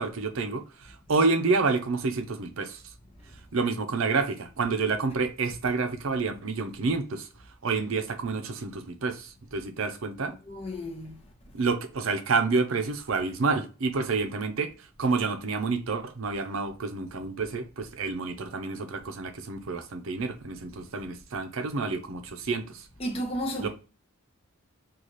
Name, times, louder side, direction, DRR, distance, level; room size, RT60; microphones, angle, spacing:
voice 1, 0.0-2.8 3.5-7.3 7.6-10.3 11.5-14.7 15.0-22.8 23.6-23.7, right 4 dB, 70° right, 0.6 m, -29 dB
voice 2, 10.5-11.2 23.0-23.7, equal, 25° left, 0.8 m, -32 dB
3.9 x 2.4 x 3.0 m
head